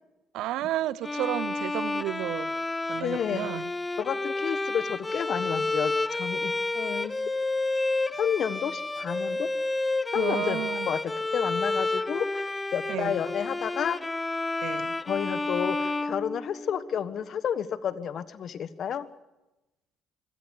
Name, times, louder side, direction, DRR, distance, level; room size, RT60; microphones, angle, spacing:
voice 1, 0.3-2.5 2.9-3.7 10.1-10.9 12.9-13.2 14.6-15.0, right 14 dB, 75° right, 0.7 m, -32 dB
Bowed string instrument, 1.0-16.9, left 2 dB, 20° left, 0.7 m, -30 dB
voice 2, 3.0-3.5 4.0-7.1 8.2-9.5 10.1-14.0 15.1-19.1, left 8 dB, 60° left, 1.4 m, -31 dB
25.0 x 17.0 x 8.2 m
supercardioid pair, 65°, 0 cm